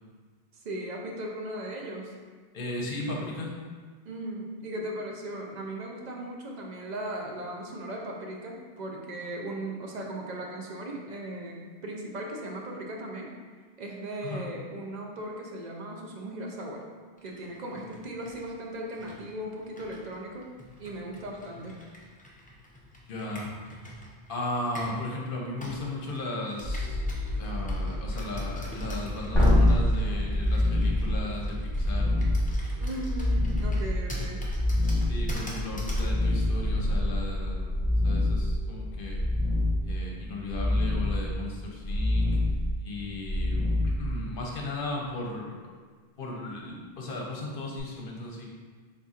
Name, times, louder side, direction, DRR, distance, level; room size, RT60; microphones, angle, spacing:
voice 1, 0.6-2.1 4.0-13.3 13.8-16.8 17.2-20.5 20.8-21.8 32.8-34.5, right 1 dB, 50° right, -1 dB, 0.6 m, -37 dB
voice 2, 2.5-3.5 14.2-14.4 23.1-23.5 24.3-27.0 27.4-32.1 35.1-39.2 39.8-42.4 42.8-45.5 46.2-48.5, left 2 dB, 60° left, -1 dB, 0.8 m, -36 dB
Computer keyboard, 17.2-25.0 25.6-36.1, left 1 dB, 10° left, 0.4 m, -46 dB
sound 1, 26.6-40.8, left 1 dB, 20° right, 0.9 m, -35 dB
sound 2, 29.3-44.6 47.8-47.9, left 1 dB, 30° left, 1.0 m, -26 dB
4.0 x 3.8 x 2.4 m, 1.6 s
omnidirectional pair, 1.1 m